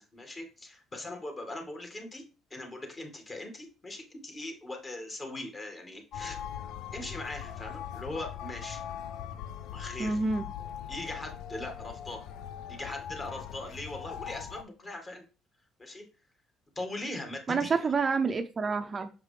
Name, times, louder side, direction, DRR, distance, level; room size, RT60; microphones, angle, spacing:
voice 1, 0.0-2.2 2.5-6.4 6.9-8.8 9.7-10.2 10.9-12.2 12.7-15.2 15.8-16.1 16.8-17.9, left 2 dB, 30° left, 3 dB, 2.0 m, -40 dB
sound 1, 6.1-14.6, left 9 dB, 75° left, 0.5 m, -41 dB
voice 2, 10.0-10.4 17.5-19.1, right 4 dB, 35° right, 8 dB, 0.6 m, -28 dB
6.6 x 4.7 x 3.3 m, 0.33 s
cardioid pair, 95°, 0 cm